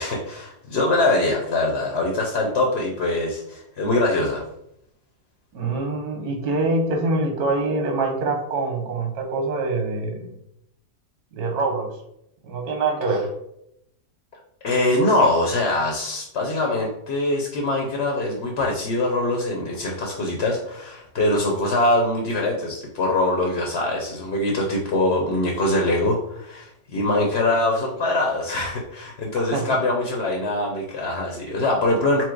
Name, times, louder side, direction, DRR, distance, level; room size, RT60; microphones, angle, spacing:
voice 1, 0.0-4.4 14.6-32.2, left 2 dB, 55° left, 0 dB, 0.8 m, -23 dB
voice 2, 5.5-10.4 11.3-11.9 12.4-13.3 29.3-29.6, right 3 dB, 85° right, 2 dB, 1.4 m, -25 dB
4.5 x 2.0 x 4.5 m, 0.77 s
omnidirectional pair, 1.6 m